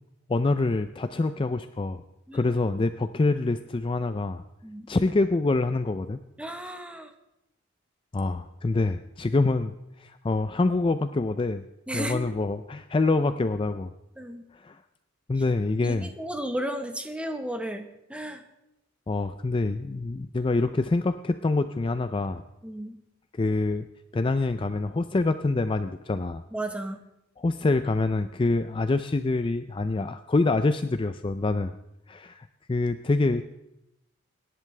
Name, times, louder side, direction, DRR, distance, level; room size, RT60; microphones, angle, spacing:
voice 1, 0.3-2.0 2.3-4.4 4.9-6.2 8.1-9.7 10.0-11.6 11.9-13.9 14.5-14.8 15.3-16.1 19.1-22.4 23.4-23.9 24.1-26.4 27.4-31.7 32.1-33.4, left 3 dB, 25° left, 10 dB, 0.4 m, -26 dB
voice 2, 6.4-7.1 11.9-12.4 14.2-14.4 15.8-18.4 22.6-22.9 26.5-27.0, right 1 dB, 5° right, 6 dB, 1.1 m, -34 dB
25.0 x 11.0 x 3.3 m, 0.88 s
head